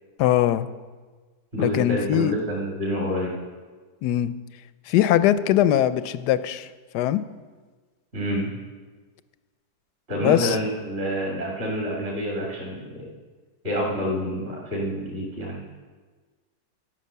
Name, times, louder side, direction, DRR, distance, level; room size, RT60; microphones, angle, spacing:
voice 1, 0.2-0.7 1.6-2.3 4.0-4.3 4.9-6.7 6.9-7.2 10.2-10.6, left 12 dB, 70° left, 1.1 m, -21 dB
voice 2, 1.5-3.4 8.1-8.5 10.1-12.8 13.6-15.6, equal, 35° right, 2.7 m, -27 dB
13.0 x 9.4 x 6.7 m
omnidirectional pair, 2.0 m